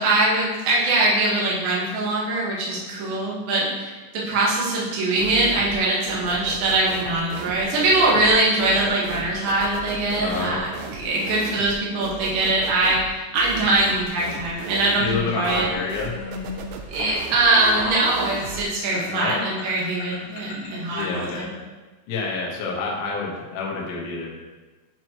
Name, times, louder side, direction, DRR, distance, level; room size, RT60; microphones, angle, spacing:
voice 1, 0.0-15.7 16.9-21.5, right 2 dB, 60° right, -5 dB, 2.7 m, -22 dB
sound 1, 5.2-5.8 6.1-18.7, right 5 dB, 85° right, 2.8 m, -36 dB
voice 2, 10.1-10.6 15.0-16.1 19.0-19.5 20.9-21.5 22.1-24.5, left 4 dB, 80° left, -3 dB, 1.8 m, -28 dB
sound 2, 14.5-21.3, left 2 dB, 65° left, 2.1 m, -35 dB
10.5 x 4.5 x 3.0 m, 1.3 s
omnidirectional pair, 5.7 m